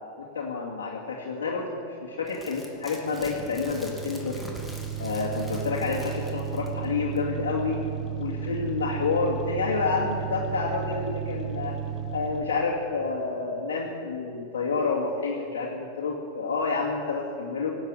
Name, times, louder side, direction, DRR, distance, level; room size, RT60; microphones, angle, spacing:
voice 1, 0.2-4.4 5.0-7.8 8.2-11.8 12.1-17.8, left 4 dB, 75° left, -5 dB, 2.4 m, -29 dB
sound 1, 2.3-6.8 7.2-7.3, equal, 5° left, 2.9 m, -44 dB
sound 2, 3.1-13.0, right 8 dB, 35° right, 1.4 m, -34 dB
17.5 x 8.3 x 9.7 m, 2.7 s
hypercardioid pair, 100°, 0 cm